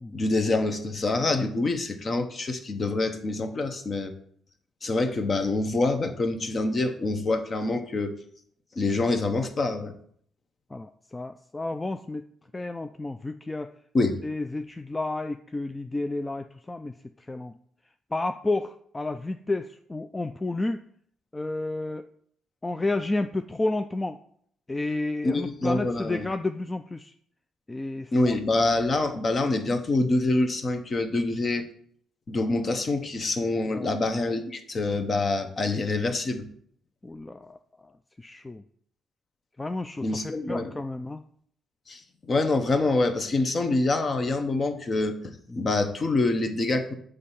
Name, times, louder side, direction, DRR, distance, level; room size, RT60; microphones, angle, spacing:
voice 1, 0.1-4.1 4.8-8.1 8.8-9.9 13.9-14.2 25.2-26.3 28.1-31.6 32.3-36.5 40.0-40.7 41.9-46.9, left 2 dB, 40° left, 8 dB, 0.8 m, -26 dB
voice 2, 10.7-13.7 14.2-17.6 18.1-20.9 21.3-22.1 22.6-24.2 24.7-27.1 27.7-28.4 33.7-33.9 37.0-38.6 39.6-41.2 45.5-45.7, left 2 dB, 20° left, 9 dB, 0.3 m, -31 dB
6.5 x 3.3 x 5.6 m, 0.64 s
cardioid pair, 90°, 0 cm